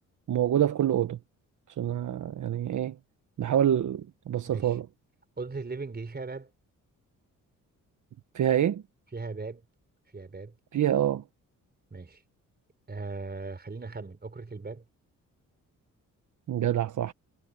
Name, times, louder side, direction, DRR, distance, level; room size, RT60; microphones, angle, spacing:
voice 1, 0.3-1.2 1.8-3.0 3.4-4.9 8.3-8.8 10.7-11.2 16.5-17.1, right 10 dB, 60° right, 1.2 m, -26 dB
voice 2, 5.4-6.5 9.1-9.6 10.1-10.5 11.9-12.2 12.9-14.8, right 3 dB, 30° right, 4.6 m, -38 dB
cardioid pair, 70°, 33 cm